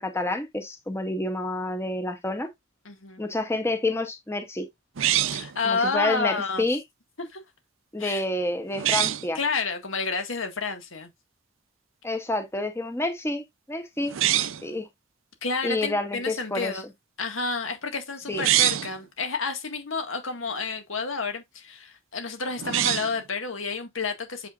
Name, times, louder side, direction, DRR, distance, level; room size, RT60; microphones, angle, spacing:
voice 1, 0.0-2.5 3.2-4.7 5.6-6.8 7.9-9.4 12.0-14.1 14.6-14.9 15.6-16.7 18.3-18.4, left 2 dB, 15° left, 0.9 m, -28 dB
voice 2, 2.9-3.2 5.3-6.7 7.3-7.4 8.0-8.2 9.3-11.1 15.4-16.8 17.2-24.5, left 4 dB, 80° left, 1.8 m, -30 dB
sound 1, 5.0-5.6 8.7-9.3 14.1-14.7 18.3-19.0 22.6-23.2, right 12 dB, 80° right, 0.6 m, -24 dB
6.9 x 5.7 x 2.4 m
head